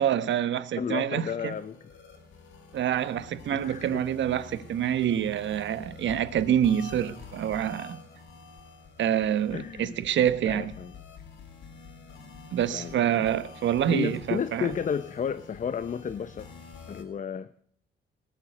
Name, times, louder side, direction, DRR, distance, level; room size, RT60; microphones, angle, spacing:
voice 1, 0.0-1.5 2.7-8.0 9.0-10.7 12.5-14.8, right 10 dB, 70° right, 1.2 m, -27 dB
voice 2, 0.8-1.8 3.5-4.0 9.5-10.0 10.5-10.9 12.7-12.9 13.9-16.5 16.9-17.5, left 7 dB, 40° left, 0.8 m, -32 dB
sound 1, 1.1-17.0, left 5 dB, 75° left, 3.7 m, -48 dB
18.5 x 6.9 x 9.9 m
cardioid pair, 90°, 20 cm